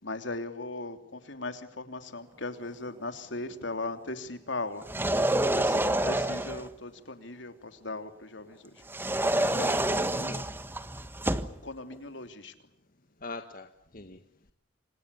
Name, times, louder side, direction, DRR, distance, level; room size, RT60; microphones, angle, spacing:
voice 1, 0.0-4.8 5.5-8.8 11.6-12.5, left 2 dB, 75° left, 3.2 m, -38 dB
sound 1, 4.8-6.7 8.9-11.6, right 1 dB, 10° right, 1.4 m, -28 dB
voice 2, 9.4-10.5 13.2-14.2, left 2 dB, 50° left, 1.7 m, -41 dB
29.0 x 26.5 x 7.0 m
head